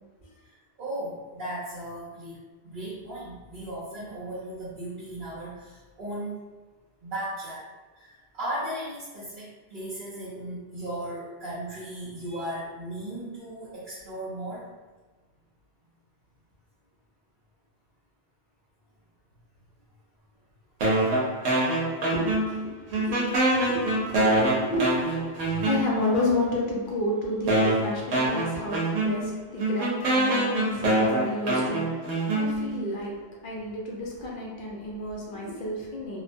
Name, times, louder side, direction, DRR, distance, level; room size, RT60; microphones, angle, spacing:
voice 1, 0.4-2.4 2.6-6.4 7.0-7.6 7.9-14.7 20.8-20.9 23.5-23.7 25.4-25.6, right 1 dB, 50° right, -9 dB, 0.7 m, -36 dB
sound 1, 20.8-22.7 22.9-26.2 26.9-27.0 27.5-32.9, right 1 dB, 75° right, 1.1 m, -25 dB
voice 2, 22.1-23.2 23.6-36.2, left 1 dB, 55° left, -3 dB, 0.6 m, -31 dB
3.0 x 2.1 x 2.5 m, 1.3 s
omnidirectional pair, 1.3 m